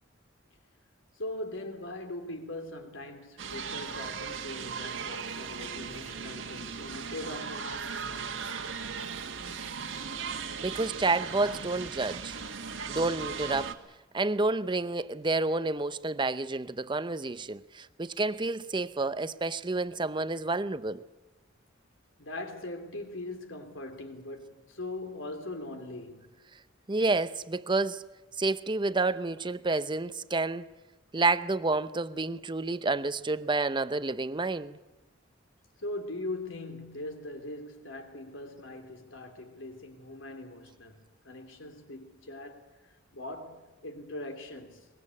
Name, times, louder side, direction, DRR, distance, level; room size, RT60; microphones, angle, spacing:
voice 1, 1.2-8.0 22.2-26.3 35.8-44.9, left 2 dB, 80° left, 3.2 m, -41 dB
sound 1, 3.4-13.7, right 6 dB, 75° right, 1.8 m, -37 dB
voice 2, 10.6-12.4 12.9-13.7 14.1-21.0 26.9-28.0 28.4-30.7 31.1-34.8, right 3 dB, 25° right, 0.7 m, -29 dB
23.0 x 21.5 x 8.5 m
head